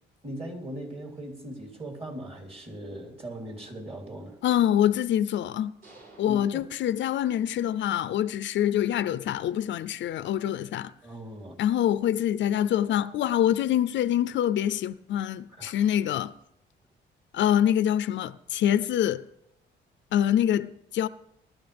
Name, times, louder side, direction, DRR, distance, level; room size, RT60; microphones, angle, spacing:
voice 1, 0.2-4.4 6.3-6.6 11.0-11.5 15.5-15.7, right 1 dB, 30° right, 3.3 m, -39 dB
voice 2, 4.4-5.7 6.2-10.9 11.6-16.3 17.3-19.2 20.1-21.1, left 11 dB, 70° left, 0.5 m, -25 dB
sound 1, 5.8-7.6, right 2 dB, 50° right, 6.3 m, -54 dB
19.5 x 12.0 x 3.5 m
cardioid pair, 90°, 20 cm